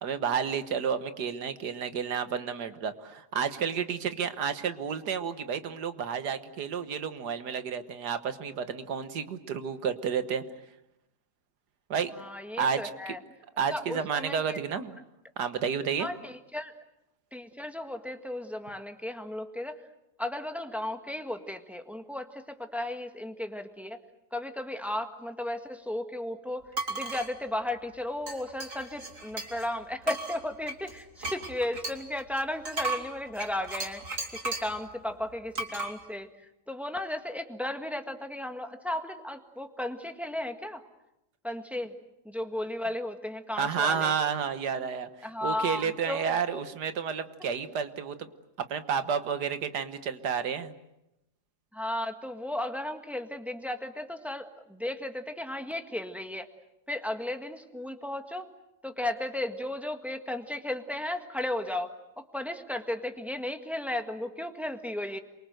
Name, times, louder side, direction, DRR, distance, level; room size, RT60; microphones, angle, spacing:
voice 1, 0.0-10.4 11.9-12.1 12.6-12.8 13.1-13.2 13.6-15.0 15.4-16.1 43.6-45.1 45.4-48.3 48.7-50.7, right 7 dB, 90° right, 10 dB, 1.9 m, -31 dB
voice 2, 12.1-13.2 13.7-14.6 16.0-16.7 17.3-19.8 20.2-24.0 24.3-34.0 34.3-36.3 36.7-40.8 41.4-41.9 42.2-44.1 45.2-46.6 51.7-56.5 56.9-58.5 58.8-61.9 62.2-65.2, left 1 dB, ahead, 6 dB, 1.5 m, -35 dB
sound 1, 26.7-27.3 28.3-29.7 30.0-34.8 35.6-35.9, right 2 dB, 50° right, 3.2 m, -35 dB
27.5 x 24.0 x 7.9 m, 0.90 s
omnidirectional pair, 1.7 m